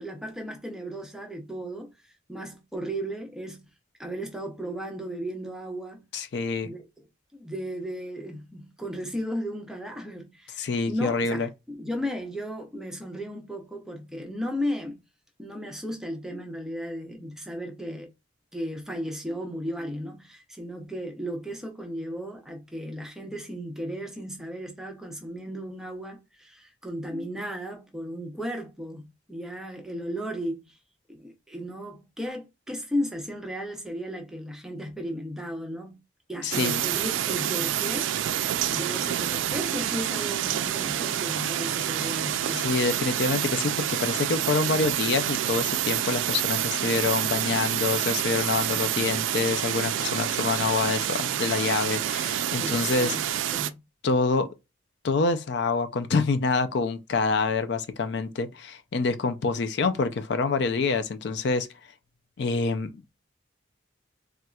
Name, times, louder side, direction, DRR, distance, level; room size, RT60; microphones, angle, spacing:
voice 1, 0.0-3.7 4.0-6.0 6.5-6.8 7.3-15.0 15.4-18.1 18.5-30.8 31.1-36.0 36.3-42.7 52.6-53.2 53.5-53.7, equal, 5° right, 0.6 m, -35 dB
voice 2, 6.1-6.7 10.6-11.5 36.4-36.8 42.5-53.2 54.0-54.5 55.0-61.7 62.4-63.1, left 4 dB, 60° left, 0.4 m, -26 dB
sound 1, 36.5-53.7, right 11 dB, 80° right, 0.3 m, -28 dB
4.1 x 2.4 x 2.3 m
head